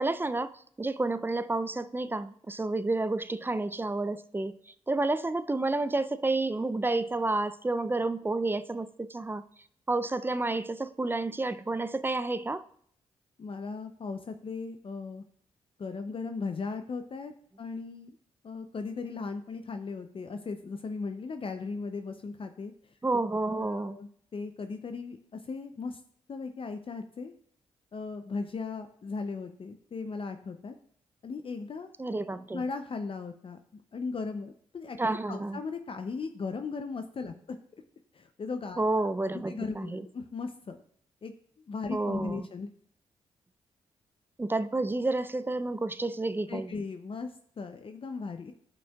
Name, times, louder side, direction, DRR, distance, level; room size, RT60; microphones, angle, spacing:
voice 1, 0.0-4.6 4.9-9.4 9.9-12.6 23.0-24.0 32.0-32.6 35.0-35.6 38.8-40.0 41.9-42.5 44.4-46.7, right 2 dB, 15° right, 0.4 m, -30 dB
voice 2, 13.4-15.2 15.8-17.3 17.6-18.2 18.4-22.9 23.5-26.0 26.3-27.3 27.9-30.7 31.2-31.9 32.5-35.0 35.3-37.6 38.1-40.8 41.2-41.4 41.7-42.7 46.5-48.5, left 4 dB, 45° left, 0.6 m, -37 dB
11.5 x 5.2 x 2.3 m
supercardioid pair, 45°, 13 cm